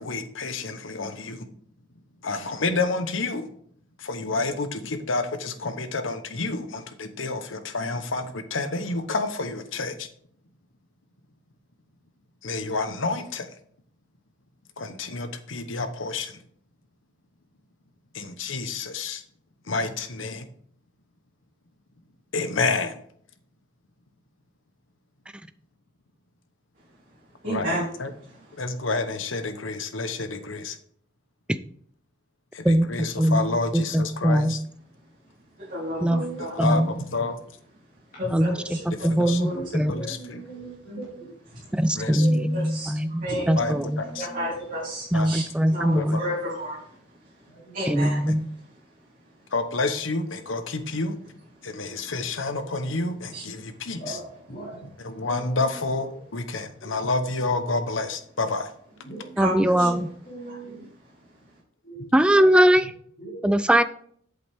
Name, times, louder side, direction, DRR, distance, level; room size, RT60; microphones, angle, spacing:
voice 1, 0.0-1.4 2.2-3.5 4.0-10.1 12.4-13.5 14.8-16.4 18.1-19.2 19.7-20.5 22.3-22.9 27.4-27.7 28.0-28.1 28.6-30.8 32.5-34.6 36.6-36.8 37.1-37.3 39.2-39.4 39.9-40.4 42.0-42.2 43.6-44.3 45.1-45.3 45.9-46.2 49.5-51.1 51.6-54.0 55.0-58.7, left 3 dB, 85° left, 9 dB, 1.0 m, -29 dB
voice 2, 27.4-28.6 35.6-36.5 38.4-39.6 39.9-40.1 42.5-42.9 43.2-43.6 44.0-45.4 45.7-47.5 47.7-48.2 51.8-52.5 53.3-53.7 59.4-59.9, equal, 40° right, -8 dB, 3.3 m, -33 dB
voice 3, 32.6-34.6 36.0-36.2 36.6-37.0 38.3-39.9 41.8-44.0 45.1-46.2 47.9-48.5 59.4-60.1 62.1-62.9 63.4-63.8, right 1 dB, 5° right, 12 dB, 0.3 m, -21 dB
voice 4, 36.1-37.0 39.3-41.3 42.1-42.6 43.5-44.5 47.4-47.8 54.0-54.9 55.2-56.0 56.5-57.1 59.0-60.8 61.8-62.7 63.2-63.7, right 2 dB, 45° left, -7 dB, 3.1 m, -40 dB
8.3 x 7.8 x 3.5 m, 0.62 s
head